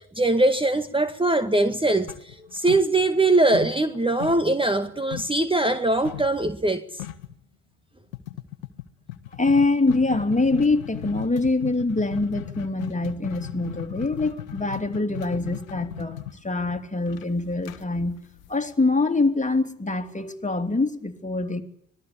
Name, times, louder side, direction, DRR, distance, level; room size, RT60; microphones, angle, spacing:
voice 1, 0.0-7.0, right 2 dB, 15° right, 1.7 m, -22 dB
sound 1, 2.1-3.3 3.5-5.4 6.0-6.4 6.7-6.8 7.0-7.4 8.1-18.9, left 14 dB, 85° left, 1.3 m, -37 dB
voice 2, 9.4-18.2 18.5-21.6, left 3 dB, 20° left, 3.2 m, -24 dB
25.5 x 20.0 x 8.7 m
hypercardioid pair, 45°, 40 cm